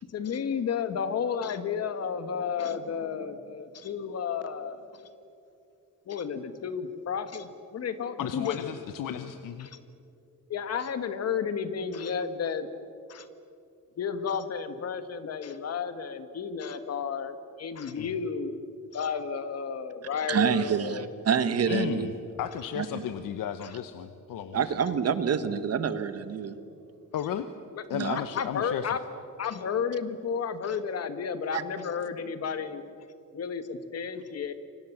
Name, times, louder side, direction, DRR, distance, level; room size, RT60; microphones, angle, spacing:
voice 1, 0.1-5.0 6.1-8.7 9.6-9.8 10.5-12.7 13.1-13.3 14.0-18.5 18.9-21.1 23.6-23.7 27.7-27.8 28.1-29.0 29.4-32.8 33.3-34.5, left 6 dB, 50° left, 10 dB, 1.7 m, -32 dB
voice 2, 8.2-9.7 17.9-18.1 21.7-22.1 22.4-24.6 27.1-27.5 27.9-29.0, left 9 dB, 80° left, 10 dB, 1.1 m, -34 dB
voice 3, 20.3-22.1 22.7-23.0 24.5-26.5 27.9-28.2 31.5-31.6, right 7 dB, 50° right, 12 dB, 1.4 m, -27 dB
29.5 x 25.0 x 7.4 m, 2.6 s
wide cardioid pair, 175°, 32 cm